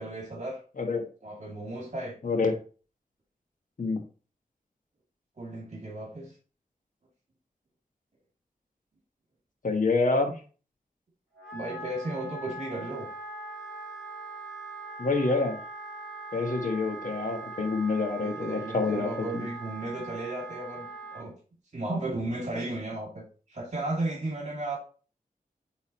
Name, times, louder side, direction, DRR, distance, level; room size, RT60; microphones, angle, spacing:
voice 1, 0.0-0.6 1.2-2.1 5.4-6.3 11.5-13.1 18.2-21.3 21.7-23.2 23.5-24.8, right 2 dB, 50° right, 2.4 m, -34 dB
voice 2, 9.6-10.3 15.0-15.6 16.3-19.5, left 3 dB, 60° left, 1.3 m, -27 dB
Wind instrument woodwind instrument, 11.3-21.2, right 3 dB, ahead, 3.4 m, -41 dB
8.4 x 3.9 x 3.0 m
wide cardioid pair, 110°, 15 cm